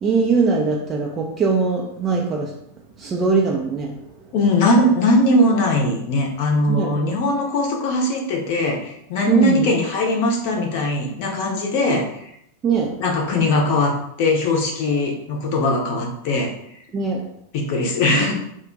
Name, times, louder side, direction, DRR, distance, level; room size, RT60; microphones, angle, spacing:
voice 1, 0.0-2.5 3.0-4.0 6.7-6.9 9.3-9.7 12.6-13.0 16.9-17.3, right 4 dB, 25° right, -1 dB, 0.4 m, -21 dB
voice 2, 4.3-12.2 13.0-16.5 17.5-18.3, left 1 dB, 45° left, 0 dB, 0.7 m, -20 dB
2.5 x 2.2 x 3.7 m, 0.74 s
figure-of-eight pair, 90°, 0 cm